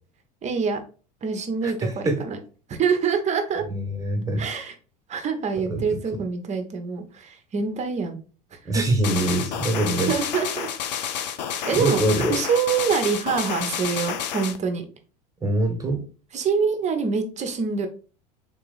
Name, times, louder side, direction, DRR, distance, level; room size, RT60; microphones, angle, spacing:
voice 1, 0.4-0.8 1.2-2.4 2.7-3.6 4.4-4.7 5.1-8.2 8.5-8.8 10.1-10.7 11.7-12.0 12.3-14.9 16.3-17.9, right 5 dB, 35° right, 6 dB, 1.0 m, -25 dB
voice 2, 1.6-2.2 3.6-4.5 5.7-5.8 8.6-10.1 11.8-12.4 15.4-16.0, right 2 dB, 15° right, 3 dB, 1.5 m, -24 dB
sound 1, 9.0-14.6, left 8 dB, 80° left, 0.6 m, -30 dB
3.9 x 2.9 x 3.9 m, 0.37 s
hypercardioid pair, 90°, 21 cm